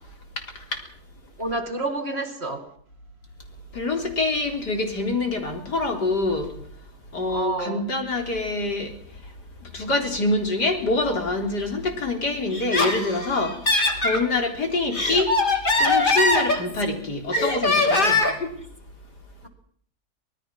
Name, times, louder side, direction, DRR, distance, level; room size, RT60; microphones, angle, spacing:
voice 1, 0.4-0.8 3.7-6.5 7.1-9.4 9.6-15.4 15.8-18.3, left 2 dB, 80° left, 4.4 m, -26 dB
voice 2, 1.4-2.7 7.3-7.8, right 2 dB, 40° right, 2.2 m, -29 dB
Laughter, 12.5-14.2 14.7-16.9 17.3-18.5, left 2 dB, 30° left, 3.0 m, -22 dB
25.0 x 19.0 x 6.1 m
omnidirectional pair, 1.7 m